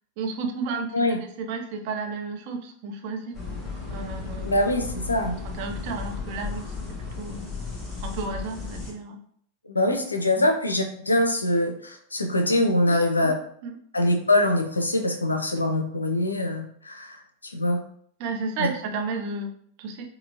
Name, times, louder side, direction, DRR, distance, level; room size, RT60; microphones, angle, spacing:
voice 1, 0.2-3.4 3.9-4.5 5.4-7.5 8.0-9.2 10.4-10.5 12.9-13.8 18.2-20.1, right 4 dB, 45° right, 4 dB, 0.5 m, -33 dB
sound 1, 3.3-8.9, left 4 dB, 15° left, 0.9 m, -35 dB
voice 2, 4.4-5.4 9.7-13.3 13.9-17.8 18.6-18.7, left 1 dB, 80° left, 5 dB, 0.5 m, -24 dB
4.2 x 2.0 x 2.6 m, 0.64 s
figure-of-eight pair, 90°, 0 cm